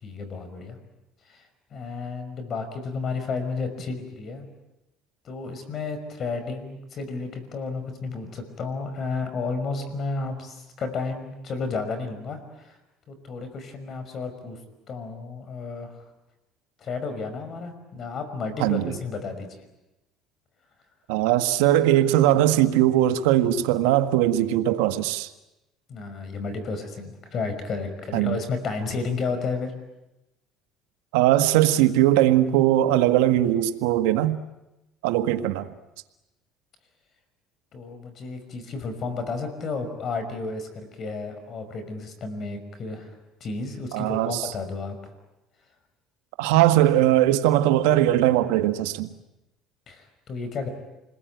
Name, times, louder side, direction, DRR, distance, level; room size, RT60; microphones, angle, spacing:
voice 1, 0.0-0.8 1.3-1.5 1.7-4.5 5.2-12.8 13.1-14.6 14.9-16.0 16.8-19.5 25.9-29.7 37.7-43.1 43.4-45.0 49.9-50.7, left 4 dB, 45° left, 5.6 m, -32 dB
voice 2, 18.6-18.9 21.1-25.3 28.1-28.4 31.1-34.4 35.0-35.7 43.9-44.5 46.4-49.1, right 13 dB, 90° right, 1.6 m, -20 dB
28.5 x 21.5 x 9.3 m
cardioid pair, 115°, 0 cm